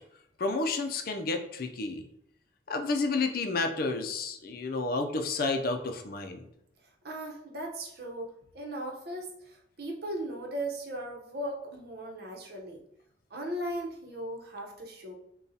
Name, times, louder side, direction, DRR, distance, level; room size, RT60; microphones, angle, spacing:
voice 1, 0.4-2.1 2.7-6.4, left 3 dB, 55° left, 5 dB, 0.5 m, -30 dB
voice 2, 7.0-12.8 13.3-15.1, right 1 dB, 60° right, 0 dB, 0.9 m, -37 dB
6.8 x 2.3 x 2.8 m, 0.74 s
head